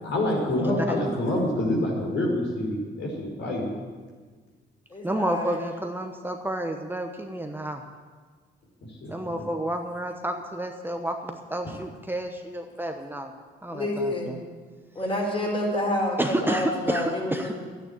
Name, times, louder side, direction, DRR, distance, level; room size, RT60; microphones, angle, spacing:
voice 1, 0.0-3.7 9.0-9.5, left 1 dB, 70° left, -1 dB, 4.9 m, -27 dB
voice 2, 0.6-1.0 5.0-7.8 9.1-13.3 13.6-14.4 16.2-17.5, right 1 dB, 10° right, 4 dB, 1.0 m, -30 dB
voice 3, 4.9-5.6 13.7-14.4 14.9-17.5, left 1 dB, 25° left, 0 dB, 4.5 m, -28 dB
12.0 x 9.4 x 8.9 m, 1.5 s
cardioid pair, 90°, 20 cm